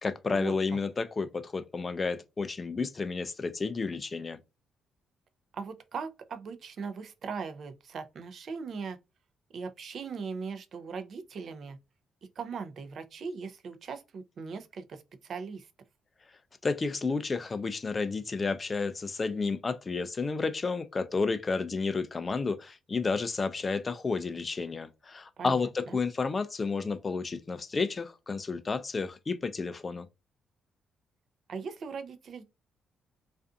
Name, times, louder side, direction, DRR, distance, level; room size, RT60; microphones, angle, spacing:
voice 1, 0.0-4.4 16.6-30.1, left 4 dB, 30° left, 0.3 m, -31 dB
voice 2, 5.5-9.0 9.5-11.8 12.4-15.7 25.4-26.0 31.5-32.4, right 5 dB, 55° right, 0.5 m, -39 dB
2.5 x 2.4 x 2.3 m
cardioid pair, 90°, 0 cm